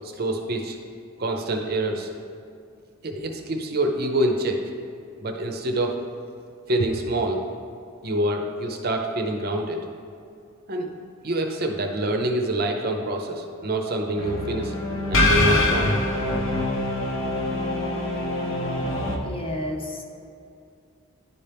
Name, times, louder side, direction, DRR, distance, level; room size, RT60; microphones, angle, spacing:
voice 1, 0.0-0.8 1.2-2.1 3.0-4.7 5.2-6.0 6.7-7.4 8.0-9.9 10.7-10.9 11.2-14.8 15.1-15.9, right 1 dB, 45° right, 3 dB, 0.6 m, -26 dB
sound 1, 14.2-19.2, left 1 dB, 75° left, 0.8 m, -24 dB
voice 2, 19.0-20.0, left 1 dB, 25° left, 2 dB, 0.6 m, -32 dB
11.0 x 4.3 x 3.4 m, 2.3 s
head